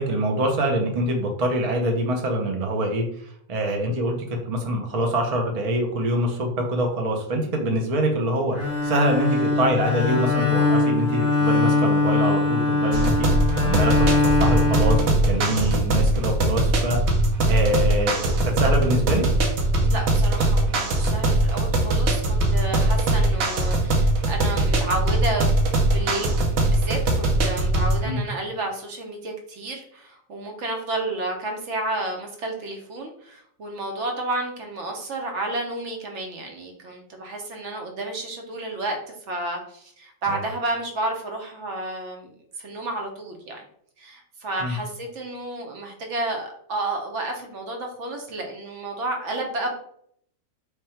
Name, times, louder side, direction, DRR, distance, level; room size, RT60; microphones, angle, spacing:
voice 1, 0.0-3.1 3.5-4.2 4.5-17.0 17.4-19.2 28.0-28.2 40.3-40.4 44.6-44.8, right 1 dB, 45° right, 2 dB, 0.4 m, -25 dB
Bowed string instrument, 8.5-15.7, left 3 dB, 25° left, 0.8 m, -22 dB
sound 1, 12.9-28.0, right 2 dB, 90° right, 1.1 m, -21 dB
voice 2, 19.8-25.5 25.8-43.6 44.0-49.7, right 2 dB, 65° right, 2 dB, 1.0 m, -31 dB
3.3 x 2.2 x 4.2 m, 0.67 s
omnidirectional pair, 1.4 m